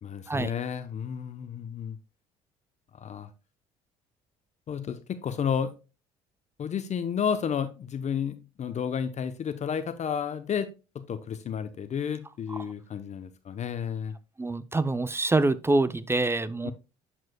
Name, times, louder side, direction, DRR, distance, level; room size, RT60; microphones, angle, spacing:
voice 1, 0.0-2.0 2.9-3.3 4.7-5.7 6.6-10.7 10.9-14.1 16.6-16.7, left 7 dB, 45° left, 0.8 m, -31 dB
voice 2, 14.4-16.7, right 2 dB, 15° right, 0.5 m, -25 dB
10.5 x 4.6 x 2.2 m
supercardioid pair, 70°, 16 cm